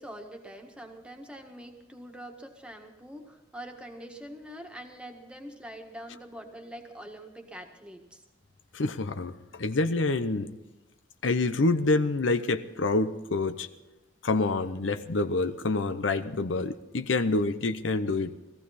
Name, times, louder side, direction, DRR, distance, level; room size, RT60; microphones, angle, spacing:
voice 1, 0.0-8.2, right 1 dB, 5° right, 3 dB, 1.6 m, -44 dB
voice 2, 8.7-10.5 11.2-13.7 14.2-18.3, left 3 dB, 85° left, 9 dB, 0.8 m, -27 dB
18.0 x 15.0 x 4.2 m, 1.1 s
head